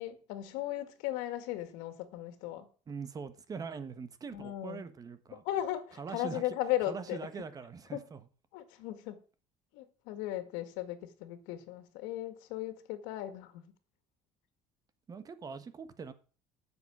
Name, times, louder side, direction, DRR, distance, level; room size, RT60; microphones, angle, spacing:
voice 1, 0.0-2.7 4.3-4.8 5.3-7.2 7.9-8.0 8.5-9.2 9.7-13.6, left 13 dB, 85° left, 2.0 m, -37 dB
voice 2, 2.9-5.4 6.0-6.4 6.9-8.2 15.1-16.1, right 5 dB, 30° right, 1.4 m, -42 dB
9.7 x 7.1 x 8.6 m
cardioid pair, 125°, 13 cm